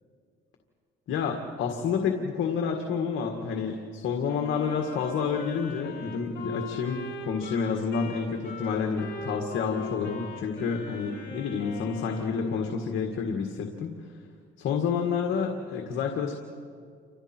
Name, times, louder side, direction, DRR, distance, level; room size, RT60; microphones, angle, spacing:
voice 1, 1.1-13.9 14.6-16.4, left 6 dB, 80° left, 3 dB, 1.9 m, -29 dB
Wind instrument woodwind instrument, 4.3-12.7, left 2 dB, 65° left, 6.8 m, -40 dB
29.5 x 26.0 x 4.5 m, 2.2 s
cardioid pair, 90°, 20 cm